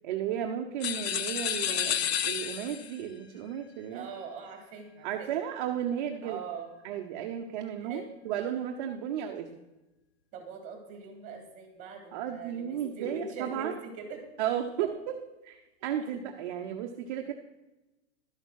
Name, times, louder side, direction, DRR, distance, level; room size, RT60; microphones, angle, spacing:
voice 1, 0.0-4.1 5.0-6.4 6.8-9.5 12.1-13.7 14.4-14.9 15.4-17.3, right 9 dB, 45° right, 4 dB, 0.8 m, -34 dB
sound 1, 0.8-3.0, left 9 dB, 65° left, 0.8 m, -30 dB
voice 2, 3.9-5.3 6.2-6.7 7.8-8.1 10.3-14.2 17.0-17.1, right 5 dB, 20° right, 3 dB, 3.1 m, -42 dB
12.0 x 6.8 x 6.4 m, 1.0 s
supercardioid pair, 170°, 34 cm